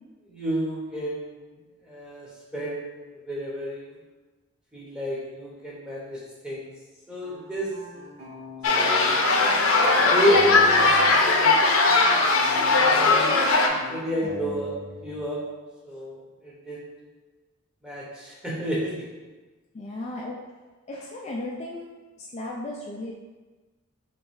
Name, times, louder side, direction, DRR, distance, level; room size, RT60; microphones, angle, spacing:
voice 1, 0.3-1.4 1.9-2.9 3.2-4.0 4.7-6.7 7.1-7.7 8.7-9.1 10.0-11.5 12.7-14.7 15.0-15.4 15.8-16.8 17.8-19.0, equal, 5° right, -6 dB, 0.9 m, -30 dB
sound 1, 7.2-11.1 11.4-15.2, equal, 30° right, 1.2 m, -41 dB
sound 2, 8.6-13.7, left 3 dB, 80° left, 0.6 m, -19 dB
voice 2, 19.7-20.4 20.9-21.9 22.2-23.1, left 2 dB, 30° left, -2 dB, 0.4 m, -35 dB
3.4 x 3.2 x 4.7 m, 1.2 s
head